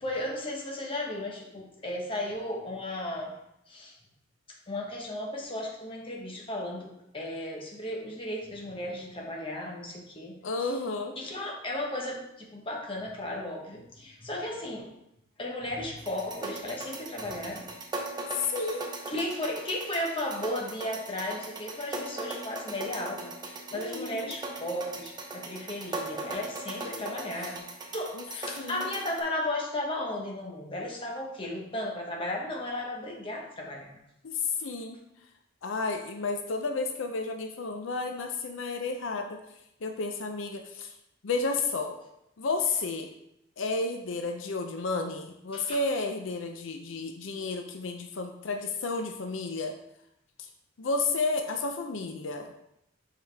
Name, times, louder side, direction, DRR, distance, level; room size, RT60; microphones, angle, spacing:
voice 1, 0.0-3.4 3.7-3.9 4.7-10.3 10.6-10.7 11.2-14.9 15.4-17.7 19.1-27.6 27.9-33.9 45.5-45.8, left 1 dB, 30° left, -1 dB, 1.2 m, -35 dB
voice 2, 10.4-11.1 18.3-18.9 23.7-24.4 28.1-28.2 28.6-28.9 34.2-35.0 35.6-39.4 39.8-40.9 41.2-42.0 42.4-43.1 43.6-49.7 50.4-50.5 50.8-52.5, left 3 dB, 75° left, 4 dB, 0.6 m, -32 dB
sound 1, 16.0-29.2, right 2 dB, 20° right, 0.8 m, -39 dB
7.3 x 5.0 x 3.4 m, 0.82 s
head